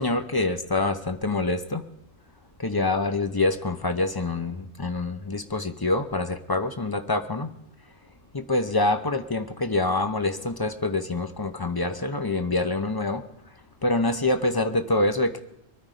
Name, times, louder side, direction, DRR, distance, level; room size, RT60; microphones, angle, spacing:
voice 1, 0.0-1.8 2.6-7.5 8.3-13.2 13.8-15.4, left 2 dB, 25° left, 8 dB, 0.7 m, -26 dB
23.0 x 9.5 x 5.1 m, 0.82 s
omnidirectional pair, 1.2 m